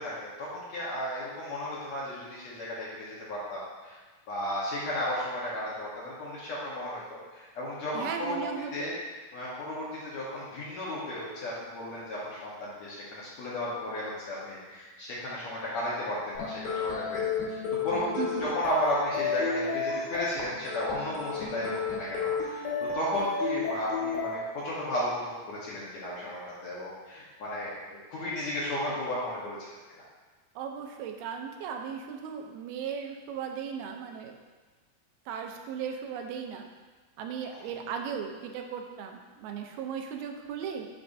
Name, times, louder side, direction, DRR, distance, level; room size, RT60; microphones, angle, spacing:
voice 1, 0.0-4.0 4.3-8.5 8.7-8.9 9.3-17.2 17.5-18.1 18.4-29.6 37.5-37.6, left 1 dB, 60° left, -7 dB, 2.0 m, -34 dB
voice 2, 7.9-8.9 18.2-18.5 30.6-34.4 35.3-36.7 37.2-40.9, right 7 dB, 85° right, 4 dB, 2.6 m, -37 dB
sound 1, 16.4-24.4, left 5 dB, 80° left, 3.3 m, -32 dB
10.0 x 5.6 x 2.7 m, 1.4 s
omnidirectional pair, 4.3 m